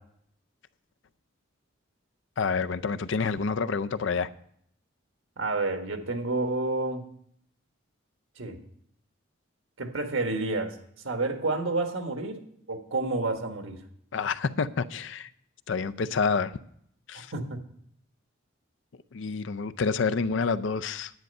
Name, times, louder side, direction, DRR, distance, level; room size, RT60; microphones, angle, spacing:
voice 1, 2.4-4.3 14.1-15.3 15.7-16.5 17.1-17.3 19.1-21.1, left 5 dB, 70° left, 13 dB, 0.5 m, -28 dB
voice 2, 5.4-7.0 8.4-8.6 9.8-10.8 11.0-12.4 12.7-13.8 17.3-17.6, right 2 dB, 80° right, 5 dB, 1.5 m, -29 dB
10.5 x 9.3 x 5.3 m, 0.68 s
head